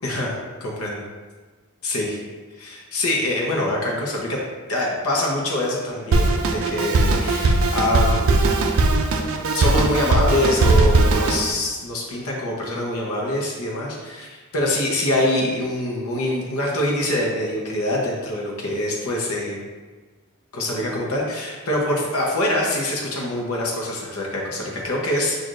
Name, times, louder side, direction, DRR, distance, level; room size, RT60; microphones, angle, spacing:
voice 1, 0.0-1.0 1.8-2.2 2.6-4.4 4.7-8.3 9.5-19.6 20.5-25.4, left 1 dB, 90° left, -2 dB, 0.9 m, -24 dB
Drum kit, 6.1-11.5, right 2 dB, 75° right, 0.4 m, -19 dB
6.2 x 2.6 x 2.5 m, 1.4 s
head